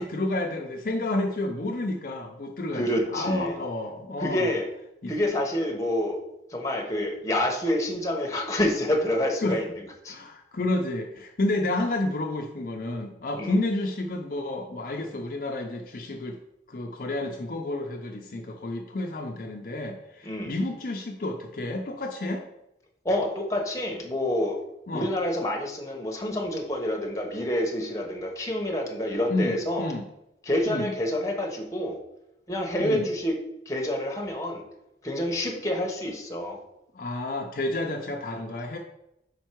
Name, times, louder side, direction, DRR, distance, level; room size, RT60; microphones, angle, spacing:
voice 1, 0.0-4.5 5.0-5.1 9.4-9.6 10.1-16.4 16.7-22.4 24.9-25.1 29.3-30.1 30.7-30.9 32.8-33.1 36.9-38.8, left 2 dB, 50° left, 2 dB, 0.5 m, -30 dB
voice 2, 2.7-3.6 4.2-4.7 5.1-6.2 6.5-9.7 10.0-10.2 13.4-13.5 20.2-20.5 23.0-24.6 24.9-29.9 30.4-32.0 32.5-33.3 33.7-34.6 35.0-36.6, left 1 dB, 20° left, 1 dB, 0.9 m, -27 dB
5.2 x 4.5 x 4.5 m, 0.84 s
head